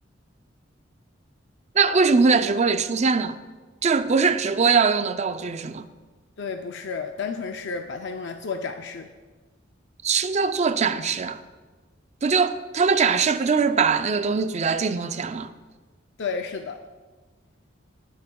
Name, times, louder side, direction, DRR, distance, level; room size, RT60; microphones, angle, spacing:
voice 1, 1.7-3.4 3.8-5.9 10.0-11.4 12.2-15.5, right 5 dB, 35° right, 0.4 m, -21 dB
voice 2, 6.4-9.1 16.2-16.8, left 5 dB, 65° left, 0.5 m, -31 dB
17.0 x 9.5 x 2.3 m
head